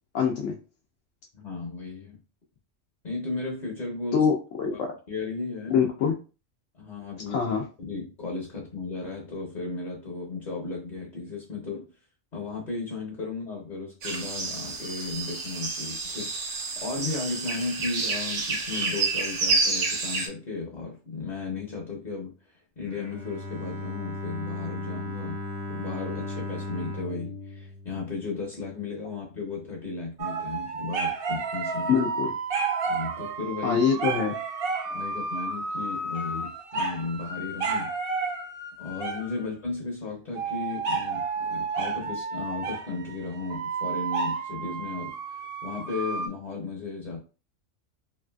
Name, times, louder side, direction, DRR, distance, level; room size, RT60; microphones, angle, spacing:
voice 1, 0.1-0.6 4.1-4.9 5.7-6.2 7.3-7.6 31.9-32.3 33.6-34.4, left 6 dB, 85° left, 0 dB, 0.9 m, -24 dB
voice 2, 1.3-2.2 3.0-4.3 4.7-4.8 5.1-5.9 6.7-7.4 7.8-11.9 12.3-25.4 25.7-31.9 32.9-33.8 34.9-37.9 38.8-47.2, left 3 dB, 45° left, -1 dB, 0.7 m, -35 dB
sound 1, 14.0-20.3, right 3 dB, 90° right, 1.1 m, -29 dB
Bowed string instrument, 22.9-28.8, left 2 dB, 15° right, 0.5 m, -37 dB
sound 2, 30.2-39.5 40.4-46.3, right 4 dB, 60° right, 0.7 m, -31 dB
3.1 x 2.5 x 2.2 m, 0.34 s
omnidirectional pair, 1.2 m